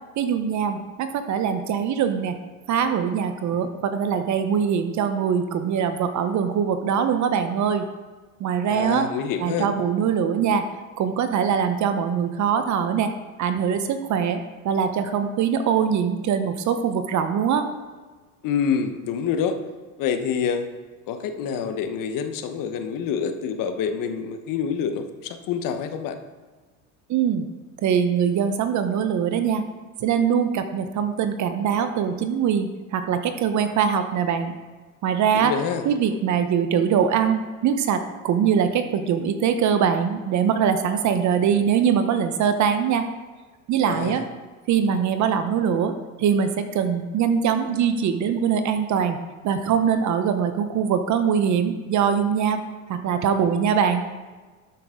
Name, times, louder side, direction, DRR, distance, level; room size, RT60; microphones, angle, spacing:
voice 1, 0.2-2.4 2.7-7.9 8.4-9.1 9.4-10.6 11.0-13.1 13.4-17.7 27.1-27.5 27.8-29.6 30.0-34.5 35.0-35.5 35.8-43.1 43.7-44.2 44.7-49.2 49.4-52.6 52.9-54.1, right 7 dB, 45° right, 9 dB, 0.9 m, -22 dB
voice 2, 8.7-9.7 18.4-19.6 20.0-20.7 21.1-26.2 35.3-35.8 43.8-44.2, left 7 dB, 50° left, 7 dB, 1.1 m, -27 dB
12.5 x 6.1 x 3.8 m, 1.4 s
supercardioid pair, 100°, 40 cm